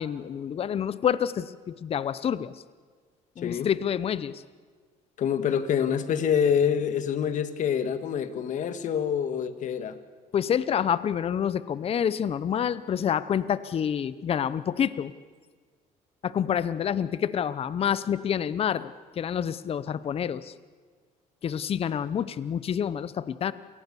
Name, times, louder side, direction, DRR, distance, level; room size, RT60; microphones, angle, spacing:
voice 1, 0.0-2.5 3.4-4.4 10.3-15.1 16.2-20.5 21.4-23.5, left 8 dB, 40° left, 16 dB, 0.8 m, -28 dB
voice 2, 3.4-3.7 5.2-10.0, left 8 dB, 55° left, 11 dB, 1.7 m, -26 dB
28.0 x 18.5 x 7.0 m, 1.5 s
cardioid pair, 105°, 15 cm